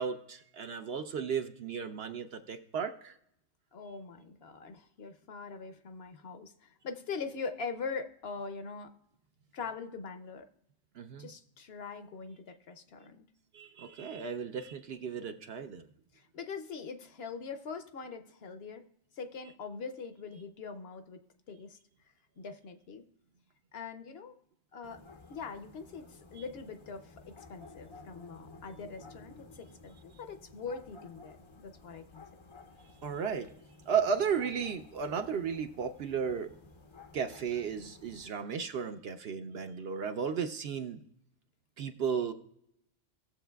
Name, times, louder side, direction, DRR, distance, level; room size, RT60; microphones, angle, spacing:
voice 1, 0.0-3.2 11.0-11.3 13.5-15.8 33.0-33.5 33.9-36.5 37.1-41.0 41.8-42.3, right 6 dB, 65° right, 8 dB, 0.7 m, -34 dB
voice 2, 3.7-8.9 9.5-10.5 11.2-13.3 16.1-18.8 19.1-21.8 22.4-23.1 23.7-24.4 24.7-25.0 25.3-32.2, left 5 dB, 60° left, 8 dB, 0.8 m, -42 dB
sound 1, 24.8-38.3, left 3 dB, 40° left, 0.4 m, -54 dB
18.0 x 7.1 x 2.3 m, 0.76 s
omnidirectional pair, 1.3 m